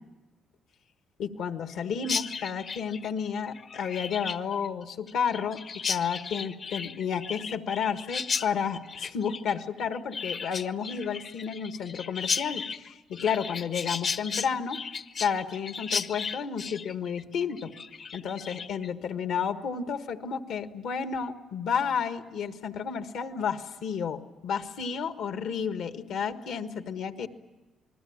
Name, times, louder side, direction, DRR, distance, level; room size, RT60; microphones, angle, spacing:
voice 1, 1.2-5.6 5.9-14.8 15.2-17.7 18.1-27.3, left 7 dB, 80° left, 9 dB, 1.5 m, -31 dB
Chirp tweet, 2.0-18.9, left 6 dB, 55° left, 0.9 m, -35 dB
28.5 x 20.5 x 8.8 m, 1.2 s
cardioid pair, 90°, 0 cm